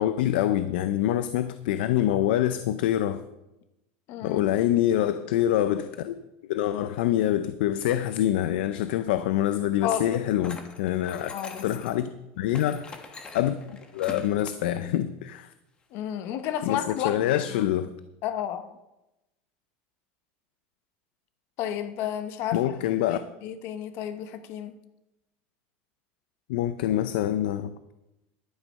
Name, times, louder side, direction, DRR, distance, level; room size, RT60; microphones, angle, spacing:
voice 1, 0.0-3.2 4.2-6.2 6.5-12.1 12.4-13.0 13.3-13.6 13.9-15.5 16.6-17.9 22.5-23.2 26.5-27.7, left 12 dB, 85° left, 0.6 m, -25 dB
voice 2, 4.1-4.5 9.8-10.1 11.3-11.7 15.9-17.7 18.2-18.8 21.6-24.7, left 10 dB, 45° left, 1.0 m, -32 dB
sound 1, 10.4-12.0 12.5-14.3, left 3 dB, 15° left, 1.1 m, -43 dB
11.5 x 9.0 x 5.4 m
supercardioid pair, 160°, 5 cm